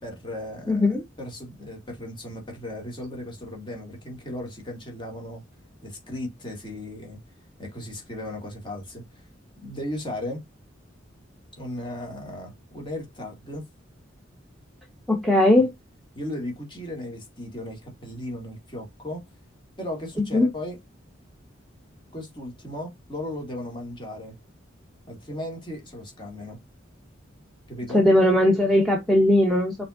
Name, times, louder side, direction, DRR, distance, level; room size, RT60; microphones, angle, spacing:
voice 1, 0.0-5.4 5.8-7.2 7.6-9.2 9.6-10.4 11.5-13.7 15.6-15.7 16.2-19.3 19.8-20.8 22.1-24.4 25.1-26.6 27.7-28.1, left 1 dB, 25° left, 2.0 m, -36 dB
voice 2, 0.7-1.0 15.1-15.7 20.3-20.5 27.9-29.8, left 1 dB, ahead, 0.9 m, -19 dB
5.6 x 3.6 x 2.5 m
head